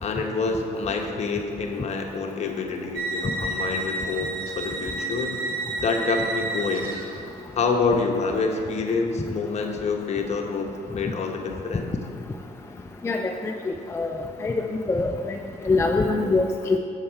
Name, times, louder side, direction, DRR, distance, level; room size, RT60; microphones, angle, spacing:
voice 1, 0.0-5.4 5.8-6.9 7.5-11.9, left 4 dB, 40° left, 2 dB, 0.9 m, -27 dB
sound 1, 2.9-7.5, right 2 dB, 75° right, 1.0 m, -31 dB
voice 2, 13.0-14.6 14.9-15.1 15.6-16.8, left 3 dB, 15° left, 3 dB, 0.4 m, -24 dB
7.0 x 6.5 x 4.5 m, 2.4 s
cardioid pair, 110°, 17 cm